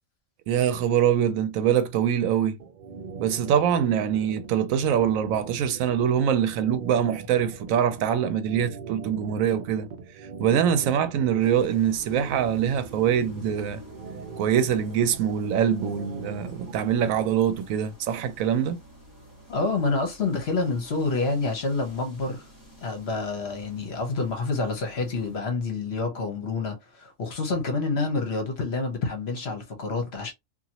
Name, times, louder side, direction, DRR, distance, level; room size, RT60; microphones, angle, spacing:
voice 1, 0.5-2.6 3.2-9.9 10.4-13.8 14.4-18.8, right 9 dB, 85° right, 1.0 m, -24 dB
sound 1, 2.6-17.3, right 5 dB, 60° right, 0.5 m, -41 dB
sound 2, 11.4-25.4, equal, 15° right, 1.3 m, -49 dB
voice 2, 19.5-22.5 22.8-30.3, left 3 dB, 55° left, 1.1 m, -28 dB
2.8 x 2.5 x 2.8 m
omnidirectional pair, 1.4 m